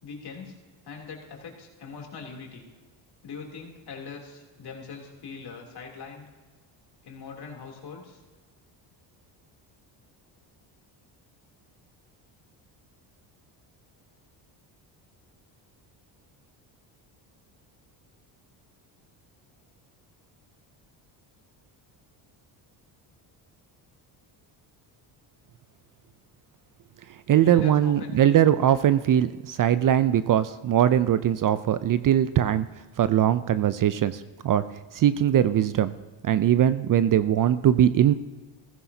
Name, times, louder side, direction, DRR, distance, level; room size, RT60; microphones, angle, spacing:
voice 1, 0.0-0.6 0.8-2.7 3.2-6.2 7.0-8.2 27.4-28.4, left 5 dB, 50° left, 1 dB, 3.1 m, -41 dB
voice 2, 27.3-32.7 33.0-34.6 34.9-35.9 36.2-38.1, right 10 dB, 45° right, 14 dB, 0.5 m, -21 dB
15.5 x 14.5 x 2.8 m, 1.3 s
cardioid pair, 85°, 49 cm